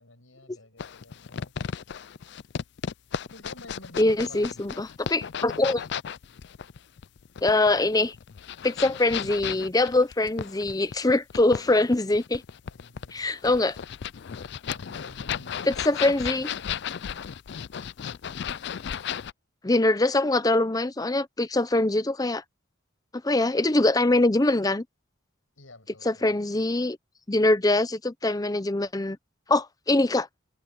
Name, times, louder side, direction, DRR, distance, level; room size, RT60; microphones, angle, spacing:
voice 1, 0.0-1.7 3.3-4.6 12.6-13.6 14.7-17.3 25.6-26.7, left 2 dB, 85° left, 7.8 m, -50 dB
sound 1, 0.8-19.3, left 8 dB, 55° left, 0.4 m, -35 dB
voice 2, 4.0-5.8 7.4-8.1 8.6-12.4 13.1-13.8 15.9-16.5 19.6-22.4 23.2-24.8 26.0-27.0 27.3-29.2 29.5-30.3, left 2 dB, 20° left, 0.7 m, -23 dB
head